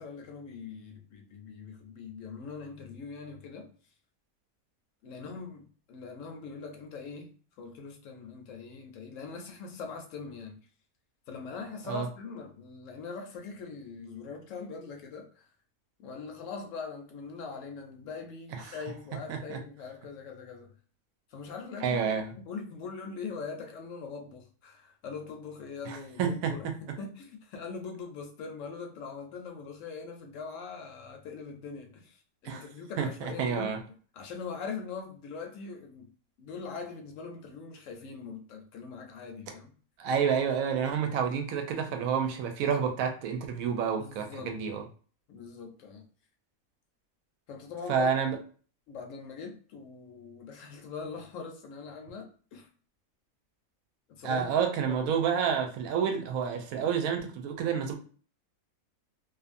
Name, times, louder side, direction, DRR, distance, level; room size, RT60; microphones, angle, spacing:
voice 1, 0.0-3.7 5.0-7.3 7.6-10.6 11.3-15.5 16.0-20.7 21.3-22.0 22.3-33.7 34.1-36.1 36.4-39.7 44.0-44.5 45.3-46.0 47.5-48.1 48.9-52.7 54.1-54.6 54.8-55.2, left 5 dB, 70° left, 0.9 m, -42 dB
voice 2, 21.8-22.3 25.8-26.5 32.4-32.6 33.0-33.8 40.0-44.8 47.9-48.4 54.2-57.9, right 7 dB, 80° right, 1.0 m, -29 dB
2.6 x 2.4 x 2.5 m
omnidirectional pair, 1.5 m